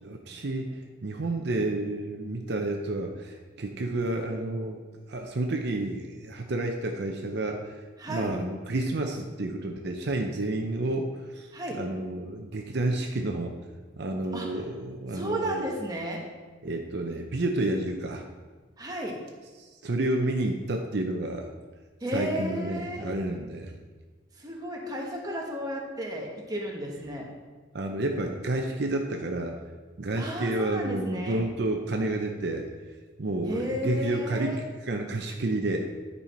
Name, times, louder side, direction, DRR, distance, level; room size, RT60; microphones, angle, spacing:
voice 1, 0.0-4.8 5.1-7.7 8.1-11.5 11.8-13.6 14.0-15.6 16.6-18.2 19.6-21.5 22.1-23.8 27.7-29.5 30.0-32.7 33.2-34.5 34.9-35.9, right 2 dB, 60° right, 3 dB, 0.7 m, -30 dB
voice 2, 8.0-8.3 11.5-11.8 14.3-14.6 15.1-16.2 18.8-19.2 22.0-23.1 24.4-27.3 30.2-31.4 33.4-34.6, equal, 20° right, -1 dB, 1.4 m, -33 dB
9.9 x 5.6 x 4.4 m, 1.4 s
head